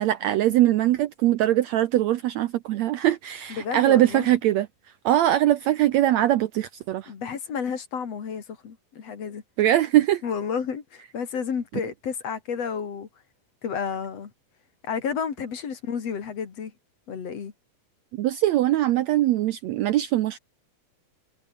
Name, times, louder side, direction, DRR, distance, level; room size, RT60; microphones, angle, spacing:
voice 1, 0.0-4.7 5.1-7.1 9.6-10.2 18.2-20.4, right 13 dB, 75° right, 1.7 m, -21 dB
voice 2, 3.5-4.3 7.1-9.4 10.2-13.1 13.6-14.3 14.8-16.7 17.1-17.5, left 6 dB, 50° left, 3.3 m, -31 dB
omnidirectional pair, 3.8 m